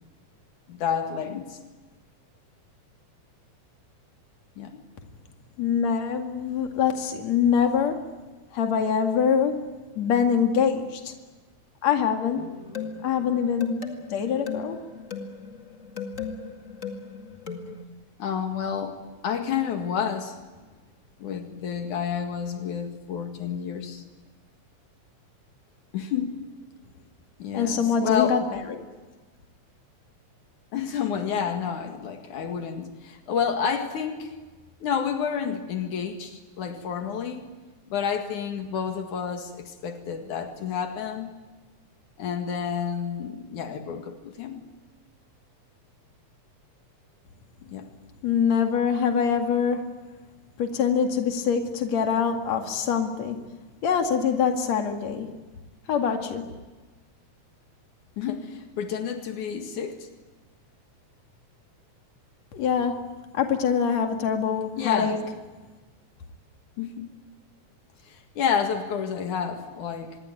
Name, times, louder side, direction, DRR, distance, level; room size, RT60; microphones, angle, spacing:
voice 1, 0.7-1.6 4.6-4.8 18.2-19.0 19.2-20.4 21.2-24.0 25.9-26.3 27.4-28.5 30.7-34.3 34.8-37.5 37.9-41.3 42.2-44.6 47.7-47.9 58.2-60.1 64.8-65.2 66.8-67.2 68.1-70.2, left 7 dB, 80° left, 5 dB, 3.4 m, -30 dB
voice 2, 5.6-8.1 8.5-11.1 11.8-12.6 13.0-14.8 27.5-28.9 48.2-50.0 50.6-53.4 53.8-55.3 55.9-56.5 62.5-65.2, left 7 dB, 60° left, 4 dB, 3.3 m, -24 dB
sound 1, 12.4-17.8, left 6 dB, 30° left, 2.1 m, -37 dB
26.0 x 22.0 x 9.4 m, 1.3 s
omnidirectional pair, 3.4 m